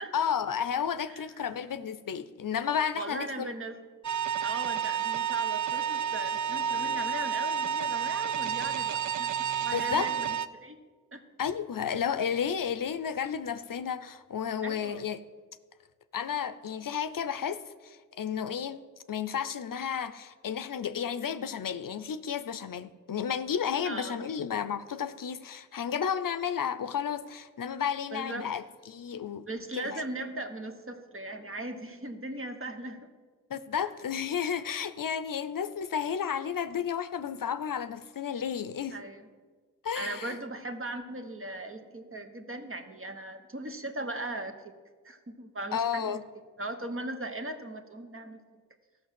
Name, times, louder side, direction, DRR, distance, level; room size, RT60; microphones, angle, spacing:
voice 1, 0.1-3.5 9.7-10.1 11.4-15.2 16.1-18.8 19.1-29.5 29.8-30.0 33.5-39.0 39.8-40.4 45.7-46.2, left 8 dB, 75° left, 0.6 m, -32 dB
voice 2, 1.1-1.5 2.9-3.8 4.4-10.3 10.5-10.8 11.1-11.2 14.6-15.0 23.8-24.2 28.1-28.5 29.5-33.1 33.7-33.9 38.9-39.3 39.9-44.7 45.0-46.2 46.6-48.4, right 2 dB, 40° right, 1.2 m, -38 dB
sound 1, 4.0-10.5, right 9 dB, 60° right, 0.5 m, -30 dB
13.0 x 6.0 x 7.5 m
wide cardioid pair, 50°, 33 cm